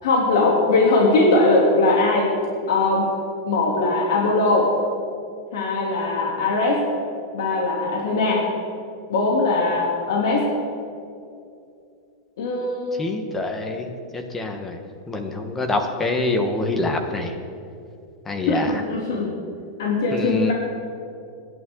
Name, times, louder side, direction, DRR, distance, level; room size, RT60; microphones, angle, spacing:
voice 1, 0.0-2.3 2.7-3.1 3.5-4.7 5.5-6.8 7.3-8.5 9.1-10.5 12.4-13.1 18.5-19.3 19.8-20.5, left 2 dB, 80° left, -3 dB, 3.0 m, -20 dB
voice 2, 13.0-13.9 14.1-14.8 15.1-17.3 18.3-18.7 20.1-20.5, left 2 dB, 10° left, 5 dB, 1.2 m, -25 dB
26.0 x 11.0 x 3.9 m, 2.5 s
supercardioid pair, 170°, 2 cm